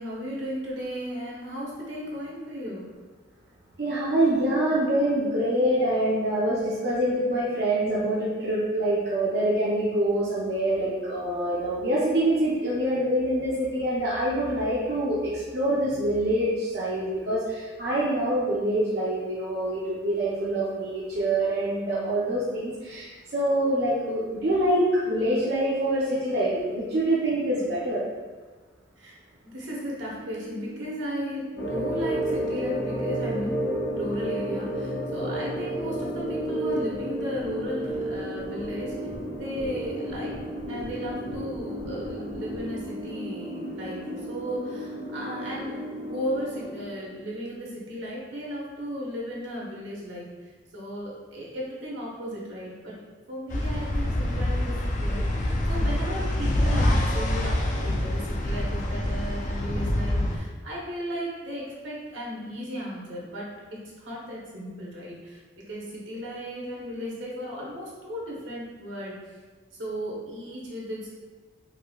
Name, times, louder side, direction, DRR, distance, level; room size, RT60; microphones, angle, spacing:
voice 1, 0.0-2.8 29.0-29.2 29.4-38.9 39.4-40.3 40.7-45.7 46.0-52.9 53.3-54.7 55.0-63.5 64.0-65.4 65.7-69.2 69.7-71.1, equal, 80° right, -5 dB, 1.0 m, -35 dB
voice 2, 3.8-28.0, right 1 dB, 55° right, -8 dB, 0.6 m, -25 dB
sound 1, 29.5-46.4, right 1 dB, 55° left, 1.3 m, -40 dB
sound 2, 31.6-46.9, right 1 dB, 80° left, 0.6 m, -33 dB
sound 3, 53.5-60.4, left 1 dB, 40° left, 0.3 m, -26 dB
4.8 x 2.5 x 2.3 m, 1.3 s
head